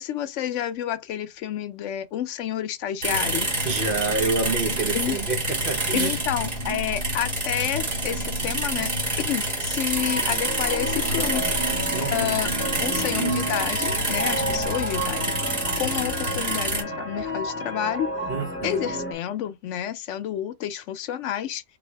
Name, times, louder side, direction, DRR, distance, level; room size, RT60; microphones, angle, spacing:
voice 1, 0.0-3.5 4.9-5.2 5.9-8.9 9.2-11.4 12.1-12.5 12.8-15.3 15.8-18.1 18.6-21.6, left 11 dB, 85° left, 0.9 m, -29 dB
sound 1, 3.0-16.8, right 1 dB, 35° right, 1.4 m, -28 dB
sound 2, 3.4-9.5 9.9-14.7, right 3 dB, 75° right, 1.2 m, -36 dB
voice 2, 3.6-6.2 11.9-12.2 18.3-19.0, right 3 dB, 50° right, 0.9 m, -28 dB
sound 3, 9.9-19.1, equal, 10° left, 1.3 m, -31 dB
4.0 x 2.7 x 4.4 m
omnidirectional pair, 1.2 m